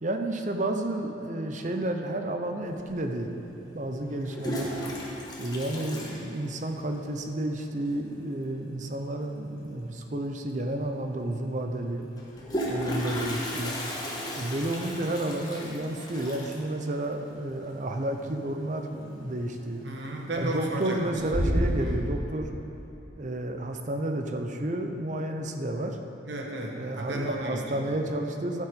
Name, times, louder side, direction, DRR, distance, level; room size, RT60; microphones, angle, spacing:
voice 1, 0.0-3.3 3.7-4.7 5.4-12.1 12.7-13.8 14.4-19.8 20.3-22.5 23.2-26.0 26.8-28.7, right 1 dB, 40° right, 5 dB, 0.7 m, -31 dB
Toilet flush, 2.8-2.9 4.1-6.9 7.2-7.3 7.5-7.6 7.9-8.3 10.0-10.1 10.5-10.6 12.1-18.8 19.1-19.5 20.0-20.5 20.9-21.9, equal, 20° left, 1.5 m, -33 dB
voice 2, 19.8-22.0 26.2-27.6, right 1 dB, 70° right, 0 dB, 1.3 m, -34 dB
12.5 x 7.5 x 5.3 m, 2.9 s
head